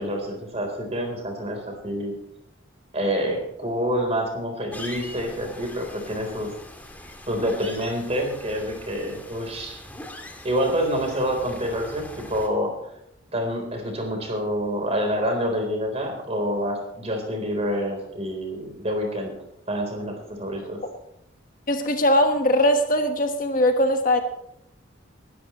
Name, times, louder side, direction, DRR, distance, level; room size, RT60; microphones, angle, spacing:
voice 1, 0.0-2.1 2.9-6.5 7.3-9.8 10.4-12.7 13.3-19.3 19.7-20.8, equal, 30° right, 3 dB, 3.9 m, -27 dB
sound 1, 4.7-12.5, left 1 dB, 10° left, 2.1 m, -42 dB
voice 2, 21.7-24.2, left 1 dB, 45° left, 5 dB, 1.5 m, -20 dB
20.0 x 13.0 x 3.1 m, 0.79 s
head